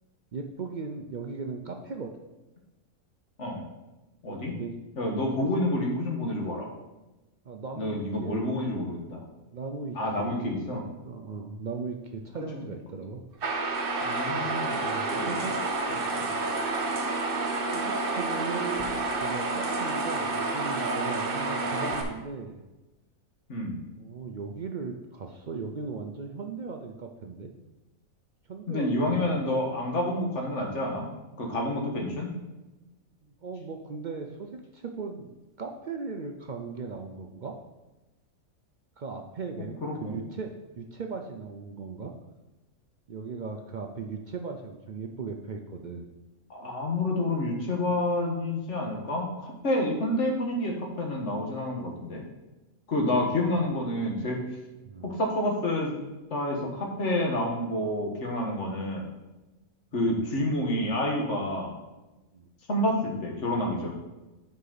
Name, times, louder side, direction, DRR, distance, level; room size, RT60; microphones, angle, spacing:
voice 1, 0.3-2.2 4.3-4.8 5.4-5.5 7.4-8.4 9.5-13.2 14.3-14.5 14.8-15.5 17.7-22.6 24.0-27.5 28.5-29.3 33.2-37.6 39.0-40.5 40.8-42.2 43.1-46.1 54.9-55.1 60.0-60.2 62.3-62.5, right 4 dB, 65° right, 3 dB, 0.4 m, -38 dB
voice 2, 4.2-4.5 5.0-6.7 7.8-9.2 9.9-10.8 12.5-12.7 14.0-14.8 15.1-15.4 16.1-16.3 23.5-23.8 28.7-31.1 31.4-32.3 39.6-40.2 46.5-52.2 52.9-54.4 55.0-55.9 56.3-59.1 59.9-61.7 62.7-63.9, left 1 dB, 55° left, 0 dB, 1.7 m, -29 dB
sound 1, 13.4-22.0, right 3 dB, 45° right, 1.0 m, -29 dB
8.2 x 5.1 x 4.0 m, 1.1 s
omnidirectional pair, 1.5 m